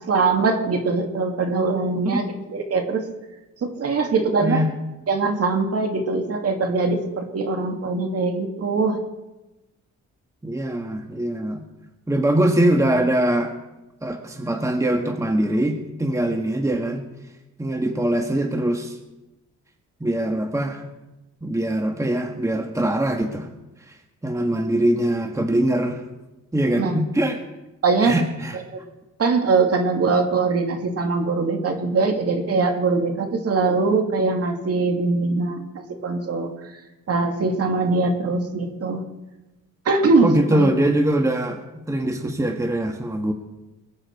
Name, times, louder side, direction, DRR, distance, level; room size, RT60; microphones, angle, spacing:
voice 1, 0.1-3.0 3.6-4.6 5.1-9.0 26.8-27.0 27.8-28.2 29.2-35.7 36.0-36.5 37.1-39.0 39.9-40.7, right 3 dB, 50° right, 4 dB, 2.4 m, -22 dB
voice 2, 10.4-11.6 12.1-13.5 14.0-17.0 17.6-19.0 20.0-20.8 21.4-23.5 23.9-24.0 24.2-26.0 26.5-27.4 28.0-28.6 40.2-43.3, right 1 dB, 10° right, 4 dB, 1.4 m, -22 dB
21.0 x 8.9 x 4.6 m, 1.0 s
cardioid pair, 90°, 30 cm